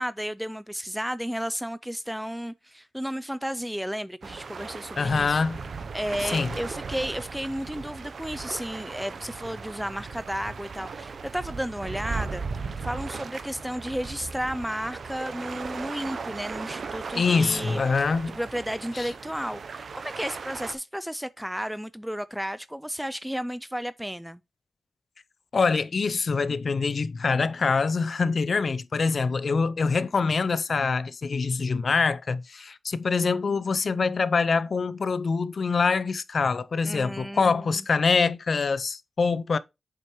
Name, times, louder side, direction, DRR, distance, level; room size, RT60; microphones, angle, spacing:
voice 1, 0.0-5.4 5.9-17.8 18.4-24.4 36.8-37.8, equal, 5° right, 0.3 m, -33 dB
sound 1, 4.2-20.7, right 5 dB, 70° right, 0.7 m, -37 dB
voice 2, 5.0-5.6 6.2-6.5 17.1-18.4 18.9-19.1 25.5-39.6, left 4 dB, 60° left, 0.5 m, -25 dB
7.7 x 5.7 x 3.1 m
cardioid pair, 60°, 0 cm